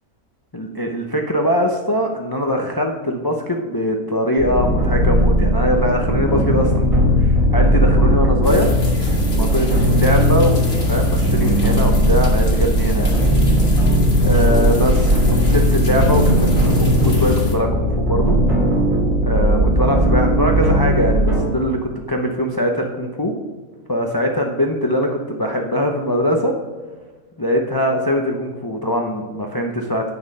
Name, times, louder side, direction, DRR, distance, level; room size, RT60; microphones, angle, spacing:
voice 1, 0.5-8.7 9.4-13.1 14.2-18.4 19.2-23.3 23.9-26.5 27.4-30.1, equal, 25° left, 2 dB, 0.5 m, -22 dB
sound 1, 4.4-21.4, equal, 60° right, 3.0 m, -17 dB
sound 2, 8.4-17.6, left 1 dB, 50° left, 2.3 m, -27 dB
8.8 x 6.9 x 5.5 m, 1.4 s
omnidirectional pair, 1.6 m